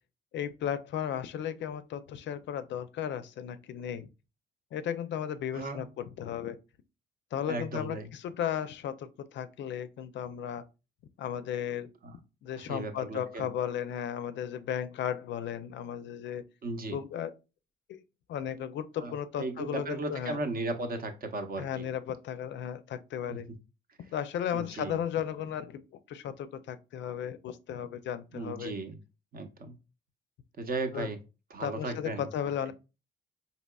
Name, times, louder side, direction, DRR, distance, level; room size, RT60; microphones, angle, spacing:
voice 1, 0.3-4.1 4.7-6.6 7.3-10.6 11.2-11.9 12.4-16.4 16.9-17.3 17.9-18.0 18.3-20.4 21.6-23.5 24.1-28.7 30.9-31.1 31.6-32.7, left 9 dB, 65° left, 0.4 m, -35 dB
voice 2, 5.5-5.8 7.5-8.1 12.0-12.2 12.5-13.5 16.6-17.0 19.0-21.9 23.3-23.4 24.5-25.0 28.3-29.0 29.3-29.7 30.6-31.2 31.5-32.3, right 2 dB, 45° right, 0.7 m, -36 dB
4.0 x 2.8 x 2.2 m
cardioid pair, 90°, 20 cm